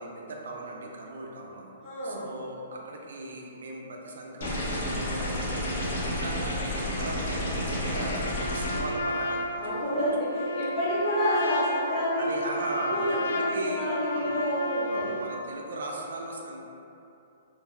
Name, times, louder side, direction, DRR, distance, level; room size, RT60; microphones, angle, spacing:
voice 1, 0.0-1.7 2.0-10.0 12.2-14.3 14.9-16.6, right 2 dB, 80° right, -1 dB, 0.4 m, -38 dB
voice 2, 1.8-2.3 9.6-12.4 12.9-15.2, equal, 15° left, -12 dB, 0.9 m, -29 dB
sound 1, 4.4-8.8, left 1 dB, 65° left, 0.7 m, -30 dB
Trumpet, 8.1-15.3, left 1 dB, 90° left, 0.3 m, -33 dB
3.8 x 2.1 x 2.2 m, 2.8 s
hypercardioid pair, 165°, 0 cm